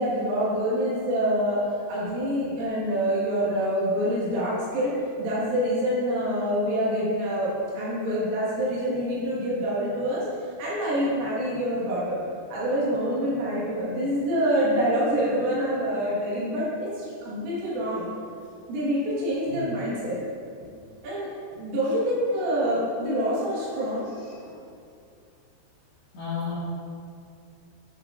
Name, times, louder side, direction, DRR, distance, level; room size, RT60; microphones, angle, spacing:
voice 1, 0.0-1.6 1.9-10.2 10.6-12.2 12.5-18.1 18.7-20.2 20.6-20.7 21.0-24.1, equal, 90° right, -8 dB, 4.6 m, -26 dB
voice 2, 24.1-24.7 26.1-26.6, left 6 dB, 65° left, -10 dB, 4.2 m, -35 dB
9.7 x 8.5 x 2.7 m, 2.4 s
omnidirectional pair, 5.6 m